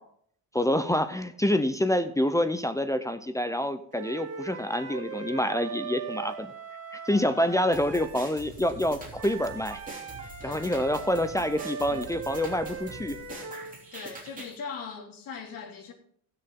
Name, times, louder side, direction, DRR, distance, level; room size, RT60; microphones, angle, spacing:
voice 1, 0.5-6.5 6.9-9.8 10.4-13.5, left 1 dB, 10° left, 0.6 m, -27 dB
sound 1, 3.9-8.2 9.1-13.8, right 5 dB, 35° right, 1.9 m, -40 dB
sound 2, 7.7-14.6, right 2 dB, 20° right, 3.2 m, -44 dB
voice 2, 10.4-10.7 11.4-11.5 11.9-12.1 13.9-15.9, left 6 dB, 55° left, 3.1 m, -41 dB
17.5 x 6.7 x 3.7 m
cardioid pair, 130°, 40 cm